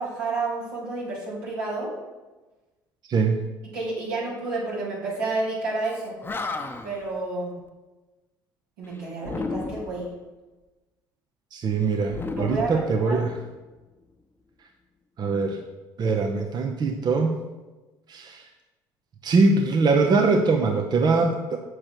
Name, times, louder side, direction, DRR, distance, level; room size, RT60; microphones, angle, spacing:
voice 1, 0.0-1.9 3.7-6.1 6.8-7.5 8.8-10.1 12.4-13.2, right 3 dB, 80° right, -6 dB, 3.0 m, -30 dB
voice 2, 3.1-3.4 11.5-13.4 15.2-15.6 16.0-17.3 18.1-18.5 19.2-21.6, right 4 dB, 40° right, 4 dB, 0.8 m, -22 dB
Animal, 5.9-6.0 6.2-7.1 9.2-10.1 12.1-13.4, left 3 dB, 20° left, 0.8 m, -33 dB
7.5 x 6.4 x 4.5 m, 1.2 s
hypercardioid pair, 60°, 10 cm